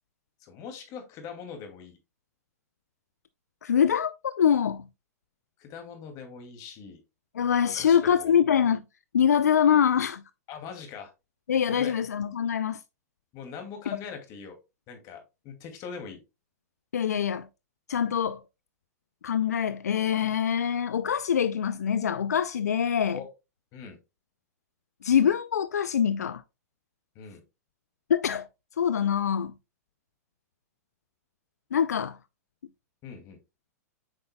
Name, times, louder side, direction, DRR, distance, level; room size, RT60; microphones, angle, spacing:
voice 1, 0.4-2.0 5.6-7.0 7.8-8.3 10.5-11.1 11.7-11.9 13.3-14.6 14.9-16.2 23.1-23.3 23.7-24.0 27.1-27.4 33.0-33.4, left 6 dB, 40° left, 2.3 m, -42 dB
voice 2, 3.6-4.9 7.3-8.8 9.1-10.2 11.5-12.8 16.9-17.5 17.9-18.4 19.2-23.2 25.0-26.4 28.1-28.5 28.8-29.5 31.7-32.2, left 8 dB, 90° left, 0.4 m, -24 dB
8.0 x 5.6 x 2.2 m
hypercardioid pair, 115°, 9 cm